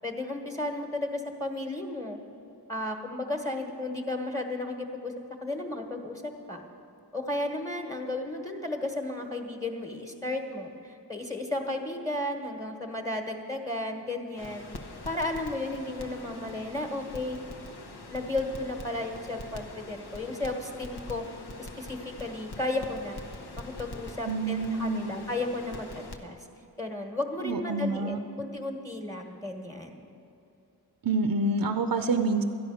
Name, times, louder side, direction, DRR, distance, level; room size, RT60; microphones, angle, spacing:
voice 1, 0.0-2.2 2.7-5.1 5.4-6.6 7.1-14.7 15.0-17.4 18.1-21.2 21.6-23.2 23.6-26.4 26.8-30.0, left 2 dB, 10° left, 3 dB, 1.3 m, -34 dB
Crackle, 14.4-26.2, left 2 dB, 80° left, 1.0 m, -44 dB
voice 2, 24.2-25.1 27.4-28.2 31.0-32.4, right 3 dB, 60° right, 7 dB, 0.6 m, -27 dB
13.0 x 10.0 x 6.4 m, 2.8 s
wide cardioid pair, 50°, 39 cm